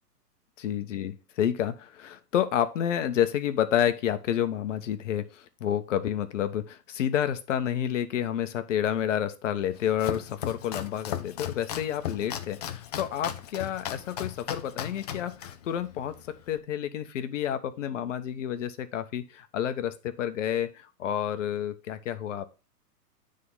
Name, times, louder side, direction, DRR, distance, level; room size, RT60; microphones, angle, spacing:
voice 1, 0.6-16.1 16.5-22.5, left 10 dB, 50° left, 10 dB, 1.1 m, -29 dB
Domestic sounds home sounds, 9.6-16.6, left 10 dB, 25° left, 0.5 m, -37 dB
9.6 x 3.9 x 5.5 m, 0.31 s
figure-of-eight pair, 120°, 49 cm